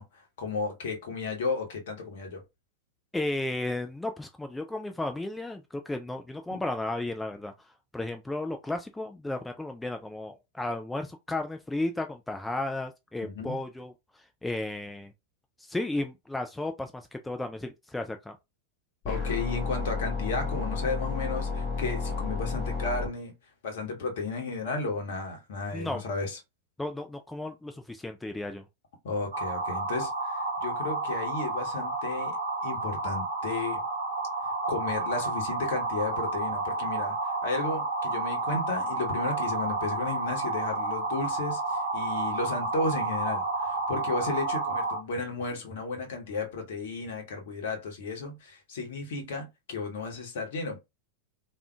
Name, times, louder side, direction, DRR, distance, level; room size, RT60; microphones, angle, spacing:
voice 1, 0.0-2.4 13.2-13.6 19.0-23.3 23.6-26.4 29.0-32.4 32.6-33.8 34.7-50.8, left 3 dB, 55° left, 0.9 m, -34 dB
voice 2, 3.1-7.5 7.9-15.1 15.6-18.4 25.7-26.0 26.8-28.6, left 2 dB, 5° left, 0.3 m, -34 dB
sound 1, 19.0-23.1, left 4 dB, 25° left, 1.1 m, -31 dB
sound 2, 29.3-45.0, right 3 dB, 60° right, 1.0 m, -31 dB
3.5 x 2.5 x 2.2 m
figure-of-eight pair, 90°, 0 cm